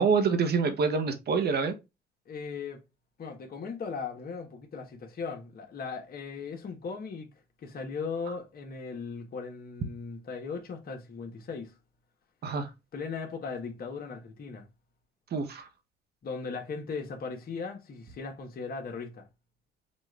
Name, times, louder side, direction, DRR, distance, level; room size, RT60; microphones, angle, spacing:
voice 1, 0.0-1.7 12.4-12.7 15.3-15.7, right 5 dB, 60° right, 1.0 m, -26 dB
voice 2, 2.3-2.8 3.2-7.3 7.6-11.7 12.9-14.7 16.2-19.3, left 5 dB, 50° left, 1.2 m, -38 dB
5.2 x 2.4 x 3.3 m
cardioid pair, 85°, 19 cm